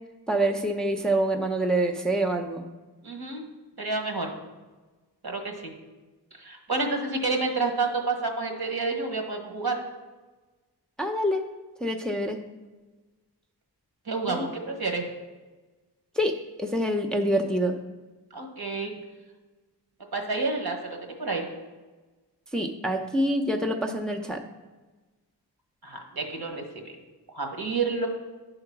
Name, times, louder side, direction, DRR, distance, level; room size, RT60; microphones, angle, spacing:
voice 1, 0.3-2.6 11.0-11.4 11.8-12.4 14.3-14.5 16.2-17.8 22.5-24.4, right 1 dB, ahead, 3 dB, 0.6 m, -26 dB
voice 2, 3.0-3.5 3.8-4.3 5.2-5.7 6.4-9.8 14.1-15.0 18.3-18.9 20.1-21.4 25.8-27.0 27.3-28.1, right 3 dB, 60° right, 3 dB, 1.5 m, -29 dB
9.9 x 3.9 x 5.9 m, 1.2 s
wide cardioid pair, 60°, 41 cm